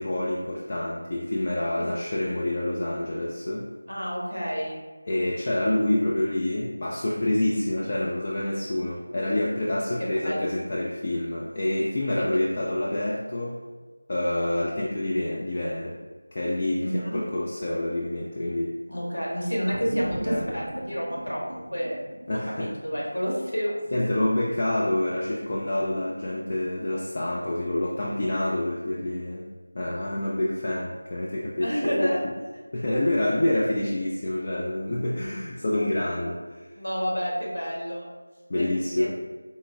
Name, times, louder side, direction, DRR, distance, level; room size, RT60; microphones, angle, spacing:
voice 1, 0.0-3.7 5.1-13.6 14.1-16.0 16.3-18.7 20.2-20.6 22.3-22.7 23.9-29.5 29.7-32.3 32.7-36.7 38.5-39.1, left 1 dB, 30° left, -4 dB, 0.4 m, -27 dB
voice 2, 3.9-4.8 10.0-10.5 12.1-12.3 16.8-17.2 18.9-22.0 22.3-24.0 31.6-32.2 32.7-33.0 36.8-38.0 38.5-38.7 39.0-39.1, equal, 80° left, -4 dB, 1.5 m, -29 dB
sound 1, 19.7-24.4, right 1 dB, 55° right, 0.3 m, -37 dB
4.0 x 3.7 x 2.4 m, 1.3 s
figure-of-eight pair, 170°, 0 cm